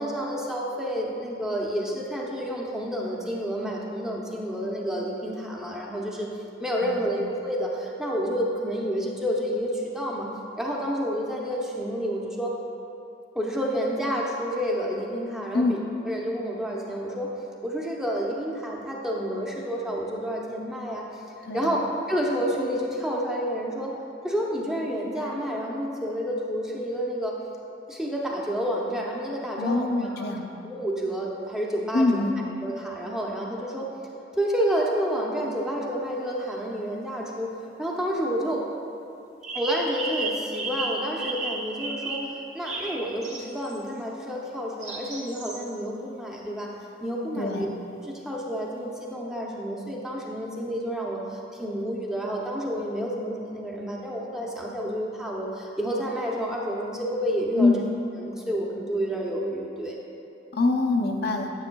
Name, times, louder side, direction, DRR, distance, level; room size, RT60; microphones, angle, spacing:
voice 1, 0.0-6.3 6.6-10.3 10.6-12.6 13.3-17.3 17.6-21.2 21.5-21.8 22.1-23.9 24.2-27.5 27.9-30.3 30.7-32.2 32.6-33.9 34.3-37.5 37.8-38.7 39.5-42.3 42.5-46.7 47.0-47.7 48.0-57.9 58.2-60.0, equal, 5° right, -3 dB, 0.7 m, -29 dB
voice 2, 21.5-21.8 29.5-30.5 31.9-32.4 47.4-47.7 57.6-57.9 60.5-61.5, left 3 dB, 60° left, 2 dB, 0.6 m, -24 dB
sound 1, 36.5-36.6 39.4-43.9 44.8-45.6, right 2 dB, 40° right, 1.2 m, -33 dB
9.3 x 8.2 x 2.3 m, 2.6 s
head